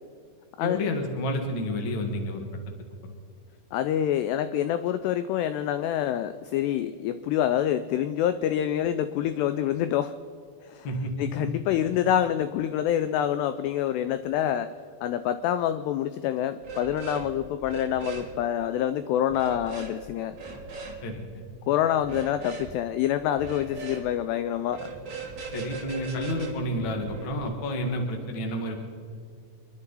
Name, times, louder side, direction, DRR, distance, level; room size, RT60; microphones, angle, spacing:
voice 1, 0.6-2.4 10.8-11.5 21.0-21.4 25.5-28.8, left 1 dB, 60° left, 3 dB, 1.3 m, -30 dB
voice 2, 3.7-10.1 10.6-10.9 11.2-14.7 15.0-20.4 21.7-24.9, left 11 dB, 85° left, 11 dB, 2.4 m, -26 dB
sound 1, 16.6-17.3 17.6-18.3 19.3-19.9 20.3-21.0 22.0-22.7 23.3-24.1 24.7-27.4, right 4 dB, 50° right, 1.3 m, -39 dB
27.5 x 11.5 x 4.1 m, 2.3 s
omnidirectional pair, 5.3 m